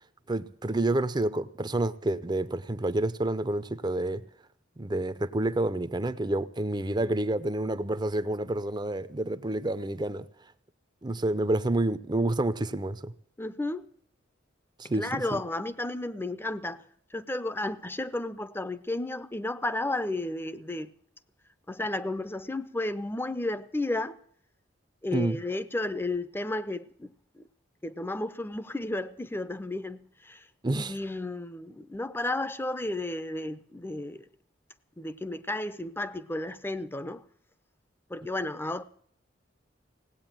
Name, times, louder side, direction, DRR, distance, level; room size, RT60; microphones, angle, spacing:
voice 1, 0.3-4.2 4.8-10.3 11.0-13.1 14.8-15.4 25.1-25.4 30.6-30.9, right 2 dB, 25° right, 0.7 m, -29 dB
voice 2, 13.4-13.9 15.0-16.8 17.1-20.9 21.7-24.2 25.0-27.4 27.8-30.5 30.7-34.2 35.0-37.2 38.1-38.8, left 2 dB, 10° left, 0.7 m, -33 dB
18.0 x 8.7 x 9.0 m
head